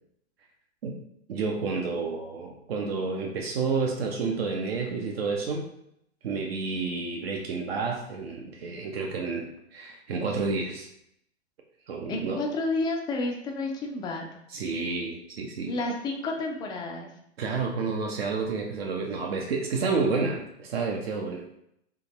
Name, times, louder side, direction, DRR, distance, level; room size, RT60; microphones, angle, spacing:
voice 1, 1.3-5.7 6.2-10.9 11.9-12.4 14.5-15.7 17.4-21.4, right 4 dB, 60° right, 1 dB, 0.7 m, -30 dB
voice 2, 12.1-14.2 15.7-17.1, left 2 dB, 15° left, 2 dB, 0.4 m, -30 dB
3.6 x 3.3 x 2.9 m, 0.76 s
figure-of-eight pair, 105°, 34 cm